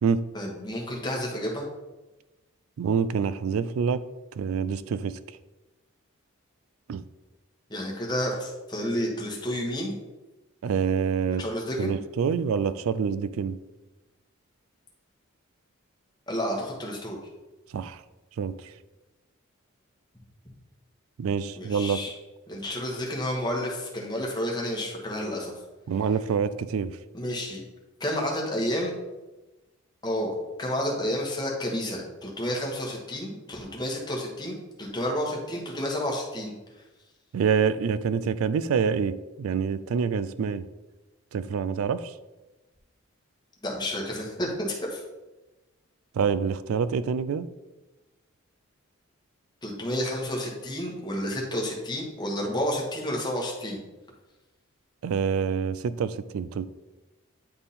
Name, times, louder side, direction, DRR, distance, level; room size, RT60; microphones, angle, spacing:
voice 1, 0.3-1.7 7.7-10.0 11.4-12.0 16.3-17.2 21.6-22.1 22.5-25.5 27.1-27.6 28.0-28.9 30.0-36.5 43.6-45.0 49.6-53.8, equal, 20° left, -1 dB, 1.3 m, -30 dB
voice 2, 2.8-4.0 4.4-5.2 6.9-7.0 10.6-11.4 11.8-13.6 17.7-18.0 18.4-18.7 21.2-22.0 25.9-27.0 37.3-40.6 41.3-42.1 46.1-47.5 55.0-56.7, right 6 dB, 80° right, 14 dB, 0.3 m, -26 dB
9.7 x 3.6 x 4.2 m, 1.1 s
head